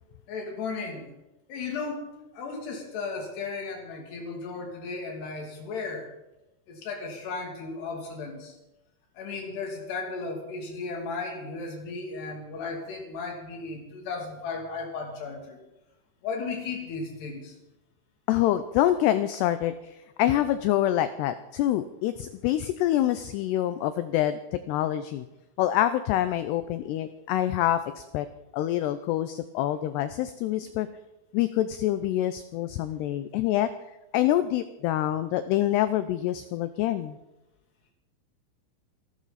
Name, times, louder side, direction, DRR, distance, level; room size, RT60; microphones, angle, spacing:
voice 1, 0.3-1.1 1.5-6.1 6.7-8.5 9.2-15.6 16.2-17.6, left 4 dB, 60° left, 1 dB, 4.7 m, -35 dB
voice 2, 18.3-25.3 25.6-28.3 28.5-30.9 31.3-33.7 34.1-37.2, left 13 dB, 90° left, 12 dB, 2.3 m, -26 dB
28.0 x 12.5 x 4.2 m, 0.97 s
omnidirectional pair, 5.5 m